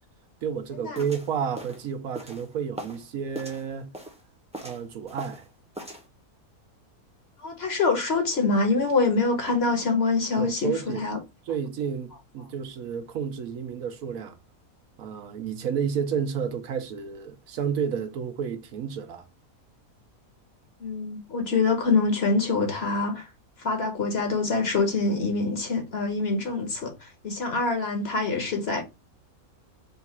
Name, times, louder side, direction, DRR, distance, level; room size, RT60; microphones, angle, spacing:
voice 1, 0.4-3.9 4.6-5.5 10.4-11.1 11.5-14.4 15.0-19.3, right 7 dB, 75° right, 1.1 m, -31 dB
sound 1, 0.9-3.0 3.3-4.2 4.5-5.5 5.7-6.1, right 1 dB, 5° right, 0.6 m, -40 dB
voice 2, 7.4-11.2 20.8-23.3 23.6-28.8, left 3 dB, 50° left, 1.1 m, -25 dB
3.8 x 2.4 x 4.2 m
omnidirectional pair, 1.5 m